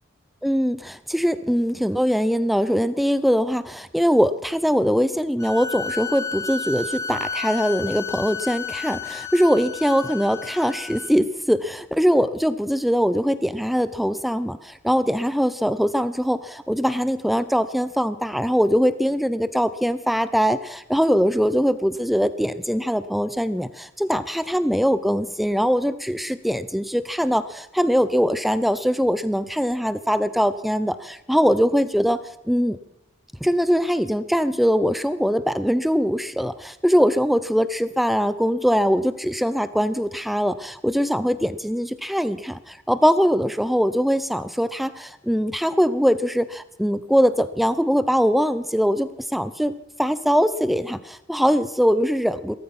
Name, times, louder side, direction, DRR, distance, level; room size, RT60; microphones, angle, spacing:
voice 1, 0.4-32.2 32.5-32.8 33.4-52.6, equal, ahead, 14 dB, 0.6 m, -22 dB
sound 1, 5.4-11.1, left 5 dB, 20° left, 1.3 m, -32 dB
17.0 x 14.5 x 5.9 m, 0.83 s
head